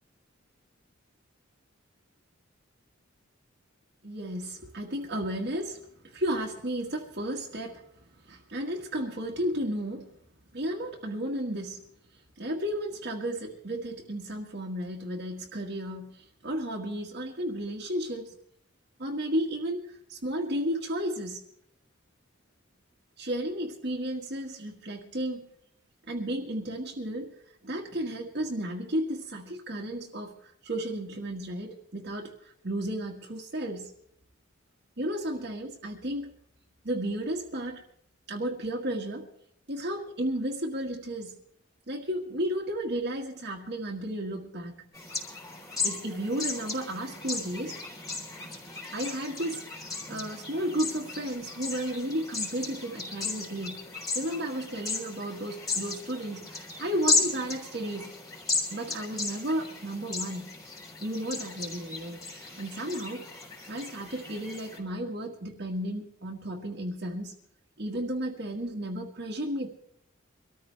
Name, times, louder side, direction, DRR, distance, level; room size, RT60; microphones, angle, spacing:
voice 1, 4.0-7.8 8.2-10.1 10.5-11.8 12.4-18.3 19.0-21.4 23.2-25.5 26.1-27.3 27.6-32.3 32.6-33.9 35.0-36.3 36.8-37.8 38.3-39.3 39.7-41.4 41.9-44.8 45.8-47.8 48.9-53.9 54.1-58.1 58.7-60.6 61.0-63.3 63.6-67.3 67.8-69.7, right 1 dB, 55° right, -1 dB, 1.8 m, -33 dB
sound 1, 44.9-64.8, left 4 dB, 15° left, 3.8 m, -35 dB
24.0 x 14.0 x 3.4 m, 0.69 s
head